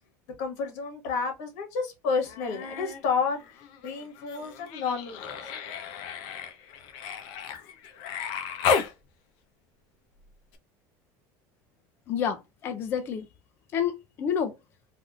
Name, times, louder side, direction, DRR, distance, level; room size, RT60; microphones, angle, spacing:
voice 1, 0.4-3.4 3.8-5.4, left 5 dB, 80° left, 1.4 m, -30 dB
Human voice, 2.2-3.0 3.3-8.9 10.5-10.6, left 6 dB, 60° left, 0.7 m, -33 dB
voice 2, 12.1-13.3 13.7-14.5, left 8 dB, 25° left, 0.4 m, -29 dB
3.4 x 2.6 x 2.4 m
cardioid pair, 170°, 9 cm